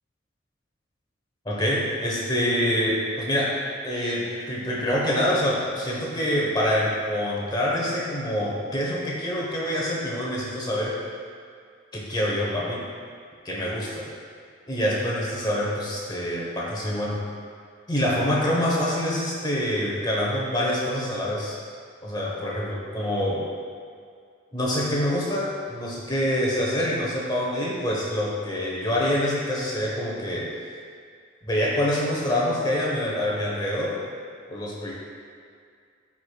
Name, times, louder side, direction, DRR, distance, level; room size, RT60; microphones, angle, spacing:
voice 1, 1.4-3.6 3.8-11.0 11.9-12.8 13.4-14.1 14.7-17.2 17.9-21.6 22.0-23.4 24.5-30.5 31.5-34.0 34.5-34.9, equal, 20° left, -5 dB, 1.1 m, -26 dB
12.0 x 5.0 x 2.4 m, 2.2 s
head